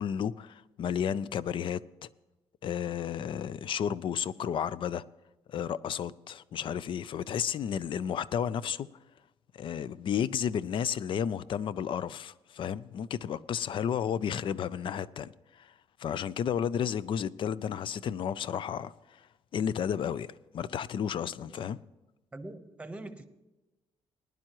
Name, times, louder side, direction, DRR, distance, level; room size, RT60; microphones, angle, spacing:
voice 1, 0.0-2.1 2.6-5.0 5.5-8.9 9.5-15.3 15.6-15.7 16.0-18.9 19.5-20.3 20.5-21.8, left 8 dB, 55° left, 0.5 m, -32 dB
voice 2, 22.3-23.2, right 2 dB, 10° right, 1.0 m, -43 dB
19.5 x 11.0 x 3.0 m
cardioid pair, 120°, 11 cm